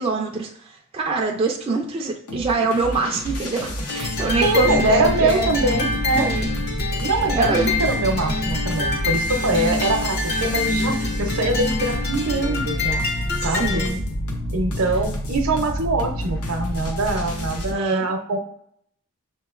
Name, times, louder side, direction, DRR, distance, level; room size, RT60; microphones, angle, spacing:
voice 1, 0.0-5.5 6.2-6.5 7.4-7.7 13.4-14.0 17.7-18.1, right 4 dB, 25° right, 0 dB, 0.3 m, -25 dB
sound 1, 2.3-17.7, equal, 90° left, 0.8 m, -28 dB
sound 2, 3.9-13.9, left 3 dB, 45° left, 0.7 m, -26 dB
voice 2, 4.4-6.3 7.0-13.1 13.4-13.9 14.5-18.4, right 2 dB, 70° right, 5 dB, 0.7 m, -23 dB
6.4 x 2.9 x 2.4 m, 0.68 s
head